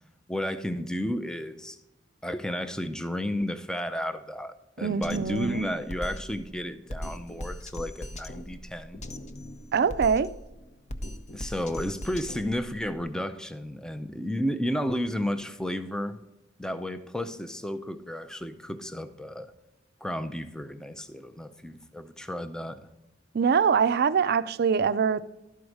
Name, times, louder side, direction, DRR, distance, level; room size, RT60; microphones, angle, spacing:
voice 1, 0.3-1.8 2.2-9.1 11.3-16.2 16.6-19.5 20.0-22.8, equal, 5° left, 0.5 m, -32 dB
voice 2, 4.8-5.7 9.7-10.3 23.3-25.3, right 6 dB, 55° right, 0.4 m, -24 dB
Drum kit, 5.0-13.0, equal, 40° left, 0.7 m, -40 dB
12.0 x 4.7 x 6.3 m
head